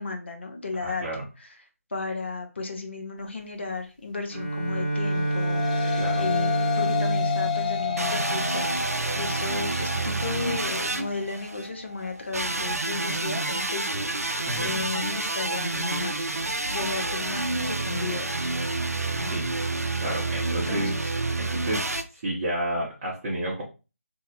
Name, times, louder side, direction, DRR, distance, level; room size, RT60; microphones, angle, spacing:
voice 1, 0.0-1.0 1.4-1.5 1.9-8.7 9.2-18.5 19.2-19.4 20.5-21.1 21.7-21.8, left 3 dB, 50° left, 3 dB, 0.8 m, -34 dB
voice 2, 0.8-1.2 5.9-6.2 14.5-14.9 19.3-19.5 20.0-20.9 21.4-21.9 22.2-23.6, right 1 dB, 25° right, -6 dB, 0.7 m, -30 dB
Bowed string instrument, 4.3-8.9, right 1 dB, 45° right, 0.9 m, -28 dB
sound 1, 5.1-14.2, left 8 dB, 30° left, 0.4 m, -32 dB
sound 2, 8.0-11.7 12.3-22.0, right 2 dB, 85° right, 0.5 m, -29 dB
2.7 x 2.0 x 4.0 m, 0.30 s
figure-of-eight pair, 160°, 8 cm